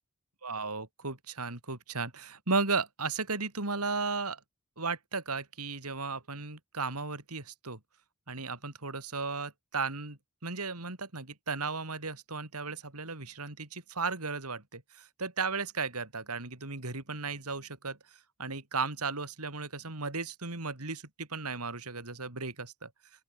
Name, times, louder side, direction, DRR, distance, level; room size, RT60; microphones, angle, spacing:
voice 1, 0.4-4.4 4.8-7.8 8.3-22.9, right 4 dB, 90° right, 4.1 m, -35 dB
open air
head